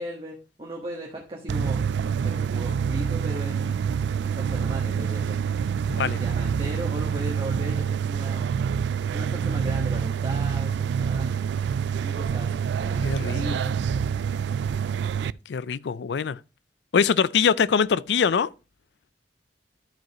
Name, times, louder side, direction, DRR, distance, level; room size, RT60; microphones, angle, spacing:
voice 1, 0.0-5.6 5.8-5.9 6.2-8.5 9.1-11.5 12.0-13.8, equal, 30° right, 1.4 m, -37 dB
sound 1, 1.5-15.3, right 7 dB, 70° right, 0.3 m, -26 dB
voice 2, 5.9-6.2 13.0-13.6 15.5-16.4 16.9-18.5, left 6 dB, 70° left, 0.4 m, -23 dB
13.0 x 5.3 x 3.0 m
head